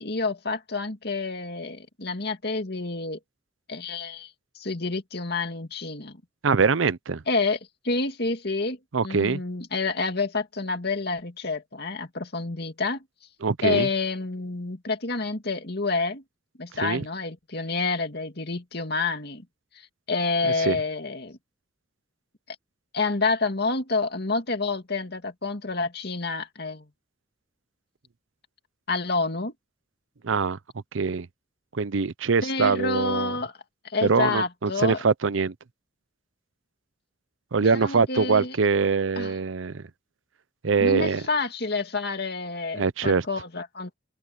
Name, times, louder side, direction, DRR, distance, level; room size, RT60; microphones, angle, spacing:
voice 1, 0.0-3.2 3.7-6.2 7.3-7.6 7.8-8.8 9.0-13.0 13.6-16.2 16.6-19.5 19.8-21.4 22.9-26.9 28.9-29.5 32.4-33.5 33.8-35.0 37.7-38.6 39.2-39.3 40.8-43.9, left 3 dB, 55° left, 2.4 m, -28 dB
voice 2, 6.4-7.2 8.9-9.4 13.4-13.9 16.8-17.0 20.4-20.8 30.2-30.6 30.9-31.3 31.7-33.4 34.0-35.5 37.5-39.9 40.6-41.2 42.8-43.2, right 5 dB, 85° right, 0.7 m, -23 dB
open air
head